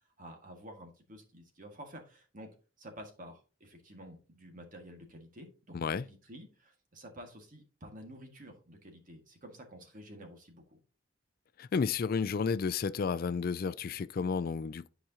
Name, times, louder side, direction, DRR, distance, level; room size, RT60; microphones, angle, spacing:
voice 1, 0.2-2.5 2.8-5.8 6.0-10.8, equal, 40° right, 1.8 m, -50 dB
voice 2, 5.7-6.0 11.6-14.9, left 5 dB, 45° left, 0.3 m, -32 dB
10.5 x 4.9 x 2.8 m
head